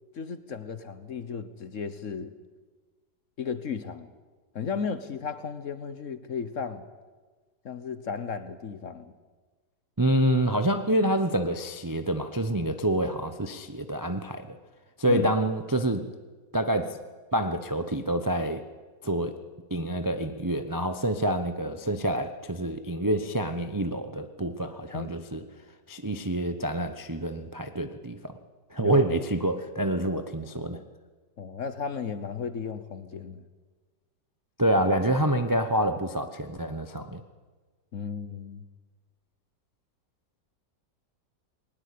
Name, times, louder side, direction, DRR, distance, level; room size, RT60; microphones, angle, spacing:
voice 1, 0.2-2.3 3.4-4.1 4.5-6.9 7.6-9.1 15.1-15.3 24.9-25.2 28.8-29.0 31.4-33.4 37.9-38.6, left 6 dB, 50° left, 12 dB, 1.3 m, -34 dB
voice 2, 10.0-14.6 15.0-16.0 16.5-17.0 17.3-18.6 19.0-19.3 19.7-25.4 25.9-28.4 28.7-30.8 34.6-37.2, right 1 dB, 20° right, 8 dB, 0.5 m, -27 dB
20.5 x 19.5 x 8.5 m, 1.4 s
omnidirectional pair, 1.9 m